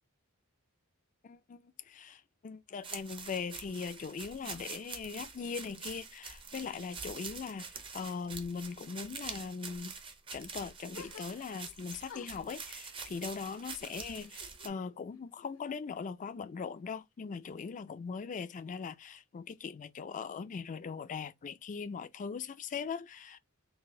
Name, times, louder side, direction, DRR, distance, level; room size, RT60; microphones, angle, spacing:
voice 1, 1.2-7.7 7.9-9.9 10.3-23.4, left 5 dB, 35° left, 0.4 m, -40 dB
sound 1, 2.8-14.7, right 5 dB, 25° right, 0.6 m, -46 dB
sound 2, 10.9-11.7 12.1-14.8 15.1-16.0, left 6 dB, 70° left, 0.7 m, -55 dB
4.0 x 2.4 x 3.7 m
head